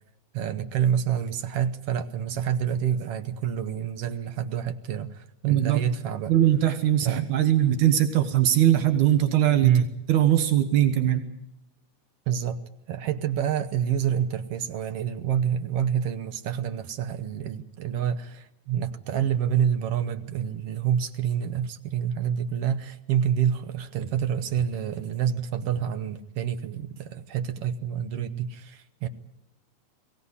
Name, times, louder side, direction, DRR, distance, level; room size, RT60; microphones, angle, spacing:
voice 1, 0.3-6.3 7.0-7.3 9.6-9.9 12.3-12.6 12.9-29.1, right 9 dB, 65° right, 10 dB, 1.7 m, -27 dB
voice 2, 5.4-5.8 6.3-9.8 10.1-11.2, right 11 dB, 85° right, 8 dB, 2.8 m, -21 dB
23.0 x 17.0 x 9.7 m, 0.82 s
omnidirectional pair, 3.4 m